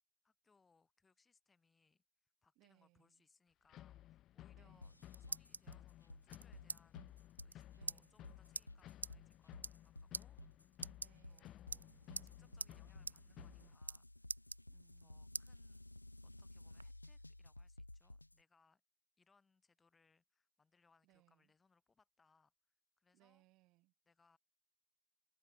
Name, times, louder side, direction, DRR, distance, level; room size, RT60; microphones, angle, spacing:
voice 1, 0.2-10.7 11.3-11.9 12.2-14.1 15.0-15.8 16.2-18.8 19.2-22.5 23.0-23.4 24.1-24.4, left 4 dB, 15° left, 5.9 m, -75 dB
voice 2, 2.6-3.2 4.5-5.1 7.7-8.3 11.0-11.6 14.7-15.4 21.0-21.5 23.1-23.9, right 20 dB, 40° right, 4.6 m, -72 dB
sound 1, 3.7-13.7, left 13 dB, 35° left, 1.1 m, -58 dB
sound 2, 4.7-5.7 6.3-6.8 7.1-7.2 7.3-7.5 7.9-8.0 8.5-8.6 9.0-9.1 9.5-9.9 10.1-10.2 10.7-11.4 11.7-12.3 12.6-12.7 13.1-13.2 13.5-14.0 14.3-15.0 15.3-15.5 16.0-16.8, right 3 dB, 80° right, 0.3 m, -45 dB
sound 3, 4.8-18.4, left 1 dB, 85° left, 0.4 m, -56 dB
figure-of-eight pair, 90°, 0 cm